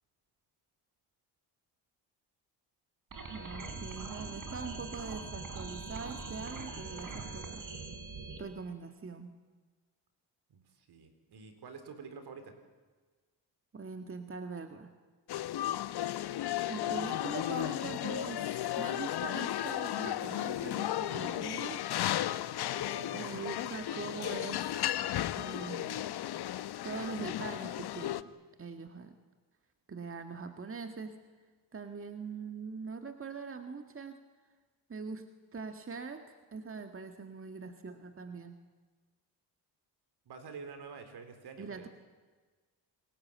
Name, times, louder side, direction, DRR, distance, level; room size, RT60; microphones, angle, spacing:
sound 1, 3.1-8.4, right 4 dB, 45° right, 5.0 m, -42 dB
voice 1, 3.3-7.7 8.4-9.4 13.7-14.9 16.7-21.8 23.1-24.8 25.3-26.1 26.8-28.3 28.6-29.2 29.9-31.2 31.7-34.2 34.9-35.2 35.5-38.6 41.6-41.9, right 4 dB, 30° right, 6 dB, 1.9 m, -42 dB
voice 2, 10.5-12.5 22.7-23.4 40.3-41.9, right 5 dB, 65° right, 8 dB, 4.2 m, -48 dB
sound 2, 15.3-28.2, left 13 dB, 65° left, 1.0 m, -34 dB
28.0 x 20.0 x 8.9 m, 1.4 s
cardioid pair, 80°, 42 cm